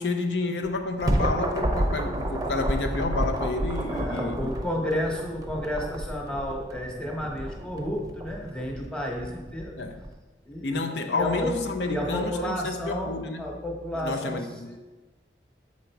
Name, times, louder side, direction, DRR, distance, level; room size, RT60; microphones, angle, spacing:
voice 1, 0.0-4.5 9.8-10.0 10.6-13.4 14.0-14.7, left 3 dB, 80° left, 0.6 m, -30 dB
sound 1, 0.6-10.1, right 1 dB, 20° right, 0.6 m, -30 dB
voice 2, 3.9-9.7 10.4-14.4 14.7-14.8, equal, 5° left, 1.0 m, -32 dB
7.1 x 5.1 x 4.5 m
head